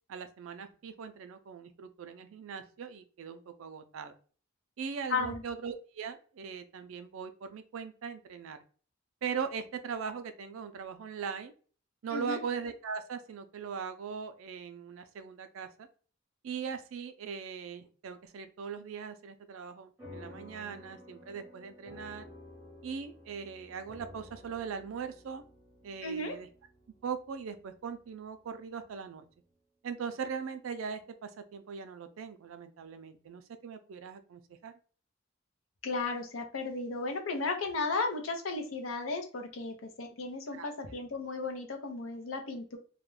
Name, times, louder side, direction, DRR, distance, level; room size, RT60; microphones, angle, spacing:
voice 1, 0.1-4.1 4.8-8.6 9.2-11.5 12.0-15.9 16.4-22.2 22.8-25.4 25.8-26.5 27.0-29.2 29.8-34.7 40.5-40.7, right 6 dB, 85° right, 9 dB, 0.4 m, -40 dB
voice 2, 5.1-5.4 12.1-12.4 26.0-26.4 35.8-42.8, left 3 dB, 85° left, 4 dB, 0.6 m, -34 dB
sound 1, 20.0-28.7, left 1 dB, 5° right, 0.9 m, -53 dB
2.3 x 2.1 x 3.1 m, 0.40 s
head